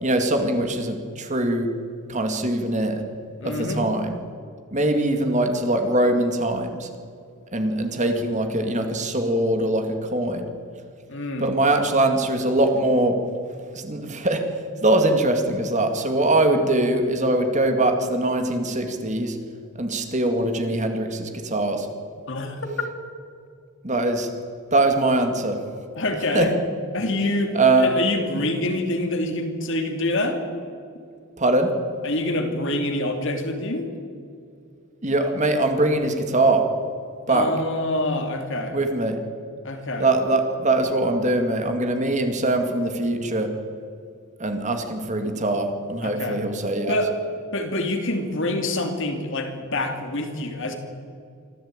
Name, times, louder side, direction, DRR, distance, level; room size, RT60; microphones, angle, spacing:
voice 1, 0.0-1.7 2.1-3.0 3.4-4.1 4.7-6.9 7.5-10.5 11.4-13.2 13.7-14.4 14.8-19.4 19.8-21.9 23.8-24.3 24.7-25.6 26.3-26.5 27.5-27.9 31.4-31.7 35.0-36.6 37.3-37.5 38.7-39.2 40.0-43.5 44.4-47.0, right 2 dB, 30° right, 6 dB, 2.2 m, -22 dB
voice 2, 3.4-3.9 11.1-11.5 22.3-22.7 26.0-26.6 26.9-30.4 32.0-33.9 37.3-38.8 39.6-40.1 46.0-46.4 46.9-47.2 47.5-50.7, left 1 dB, 55° left, 5 dB, 2.8 m, -26 dB
25.0 x 15.0 x 8.9 m, 2.4 s
head